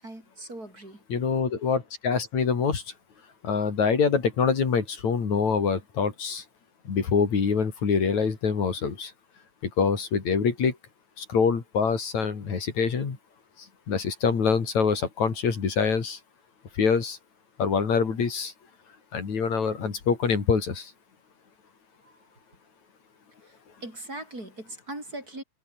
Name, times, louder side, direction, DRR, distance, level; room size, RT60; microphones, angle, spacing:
voice 1, 0.0-1.0 22.0-22.3 23.4-25.4, right 1 dB, 30° right, 7.4 m, -40 dB
voice 2, 1.1-2.8 3.4-6.4 6.8-9.1 9.6-10.8 11.2-13.2 13.9-16.2 16.7-17.2 17.6-18.5 19.1-20.9, left 5 dB, 70° left, 4.9 m, -25 dB
omnidirectional pair, 3.3 m